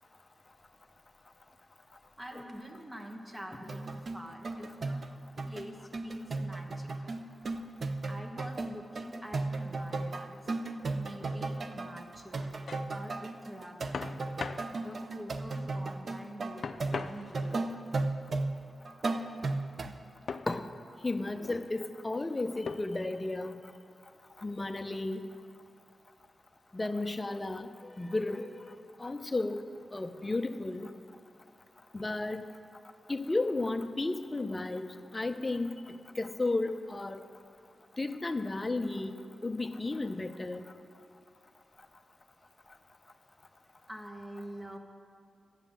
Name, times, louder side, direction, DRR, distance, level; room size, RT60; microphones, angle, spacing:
voice 1, 2.2-5.0 5.4-7.2 8.0-10.5 10.9-12.4 12.9-14.2 14.7-17.7 43.9-44.8, equal, 15° right, 3 dB, 1.4 m, -46 dB
sound 1, 3.6-20.0 20.3-20.4, right 3 dB, 55° right, 0.6 m, -35 dB
Setting Table, 12.3-12.9 13.9-14.7 16.6-17.6 20.3-20.5 21.3-21.7 22.7-23.1, left 5 dB, 65° left, 0.4 m, -40 dB
voice 2, 21.0-23.5 24.4-25.2 26.7-27.7 28.0-28.5 29.0-29.6 29.9-30.9 31.9-32.5 33.1-34.9 35.1-35.7 36.2-37.2 38.0-39.1 39.4-40.7, left 2 dB, 25° left, 8 dB, 0.7 m, -33 dB
12.0 x 8.0 x 7.5 m, 2.4 s
cardioid pair, 80°, 0 cm